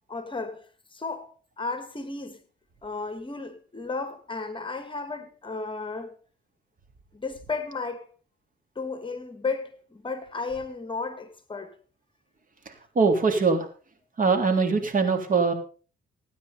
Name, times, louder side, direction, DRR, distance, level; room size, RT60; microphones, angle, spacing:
voice 1, 0.1-0.7 0.9-2.4 2.8-6.2 7.1-8.1 8.8-11.8, left 4 dB, 25° left, 2.0 m, -34 dB
voice 2, 13.0-13.7 14.2-15.5, right 4 dB, 45° right, 3.4 m, -22 dB
16.5 x 9.5 x 5.4 m
cardioid pair, 90°, 20 cm